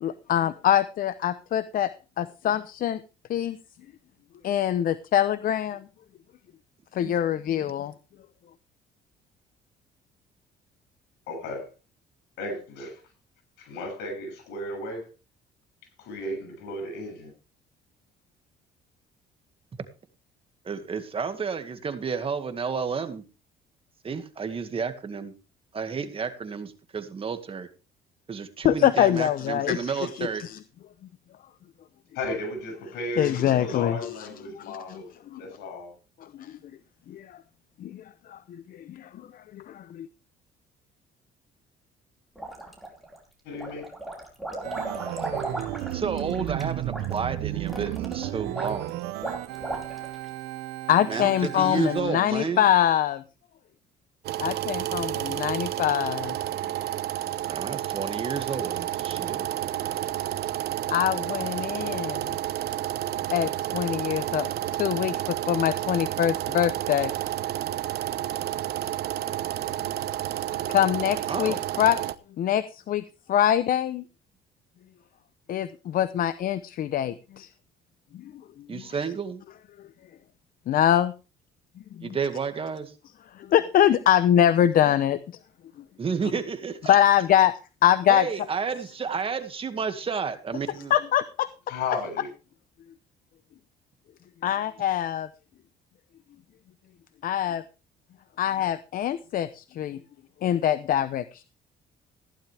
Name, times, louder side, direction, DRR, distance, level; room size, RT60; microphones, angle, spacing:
voice 1, 0.0-1.9 2.2-3.0 3.3-3.6 4.4-5.8 6.9-7.9 28.6-29.8 30.2-30.6 33.2-34.1 34.6-35.0 35.3-35.4 36.4-36.6 37.1-37.3 37.8-38.0 38.3-38.4 38.7-39.1 39.5-40.1 50.9-53.2 54.4-56.4 60.9-62.3 63.3-64.5 64.8-67.1 70.7-72.0 72.4-73.0 73.3-74.0 75.5-77.5 78.1-78.2 78.7-78.8 80.7-81.1 82.0-82.2 83.5-85.2 86.9-88.2 90.9-91.5 94.4-95.3 97.2-97.6 98.4-100.0 100.4-101.4, left 11 dB, 55° left, 14 dB, 0.8 m, -24 dB
voice 2, 11.3-11.7 12.4-13.0 13.6-15.1 16.0-17.3 32.1-35.1 35.4-35.9 43.4-43.9 91.7-92.3, left 2 dB, 85° left, 6 dB, 7.5 m, -34 dB
voice 3, 20.7-23.2 24.0-25.3 25.7-27.7 28.3-30.4 45.9-48.9 51.1-52.6 57.5-59.5 71.3-71.6 78.7-79.4 82.0-82.9 86.0-87.0 88.1-90.9, right 6 dB, 35° right, 8 dB, 2.0 m, -31 dB
sound 1, 42.4-43.2 43.5-50.3, right 2 dB, ahead, 4.7 m, -36 dB
Organ, 44.6-52.0, right 14 dB, 90° right, 1.0 m, -33 dB
sound 2, 54.2-72.1, right 13 dB, 70° right, 0.9 m, -30 dB
15.5 x 11.5 x 3.5 m, 0.31 s
cardioid pair, 110°, 17 cm